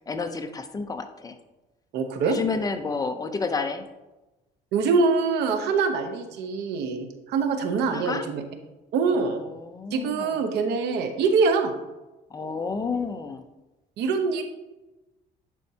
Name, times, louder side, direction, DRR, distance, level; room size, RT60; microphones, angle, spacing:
voice 1, 0.1-1.4 2.2-3.9 7.8-8.2 9.1-10.4 12.3-13.4, left 4 dB, 20° left, 7 dB, 0.7 m, -31 dB
voice 2, 1.9-2.4 4.7-8.4 8.9-9.4 9.9-11.7 14.0-14.4, right 4 dB, 80° right, 7 dB, 1.0 m, -24 dB
10.5 x 4.5 x 2.8 m, 1.0 s
cardioid pair, 110°, 17 cm